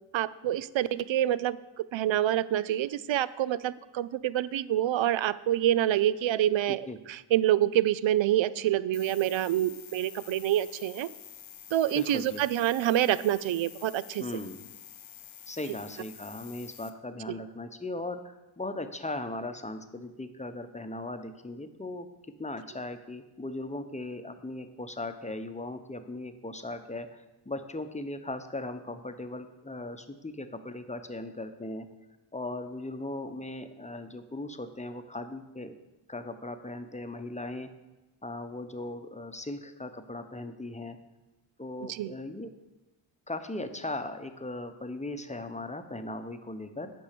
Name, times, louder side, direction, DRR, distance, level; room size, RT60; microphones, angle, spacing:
voice 1, 0.1-11.1 11.7-14.2 41.9-42.1, right 12 dB, 65° right, 17 dB, 0.5 m, -27 dB
sound 1, 8.9-16.9, left 9 dB, 70° left, 0.9 m, -48 dB
voice 2, 11.9-12.4 14.2-14.7 15.5-22.1 22.4-27.2 27.5-31.9 32.3-35.8 36.1-37.7 38.2-41.0 41.6-42.5 43.3-46.9, left 2 dB, 15° left, 8 dB, 0.9 m, -38 dB
8.7 x 5.4 x 6.8 m, 1.1 s
cardioid pair, 45°, 49 cm